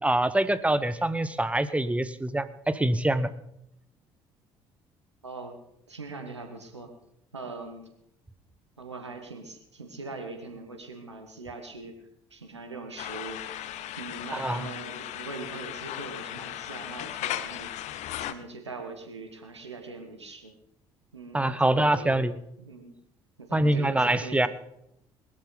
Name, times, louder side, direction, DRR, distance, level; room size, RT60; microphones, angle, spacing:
voice 1, 0.0-3.3 14.4-14.7 21.3-22.3 23.5-24.5, right 1 dB, 10° right, 14 dB, 1.0 m, -25 dB
voice 2, 5.2-5.6 5.9-6.9 7.3-7.9 8.8-12.0 12.3-13.4 14.0-17.7 18.2-20.5 21.1-22.3 22.6-23.0 23.4-24.5, right 3 dB, 85° right, 5 dB, 1.6 m, -41 dB
sound 1, 13.0-18.3, left 12 dB, 55° left, 0.8 m, -36 dB
20.0 x 12.5 x 4.0 m, 0.78 s
figure-of-eight pair, 50°, 14 cm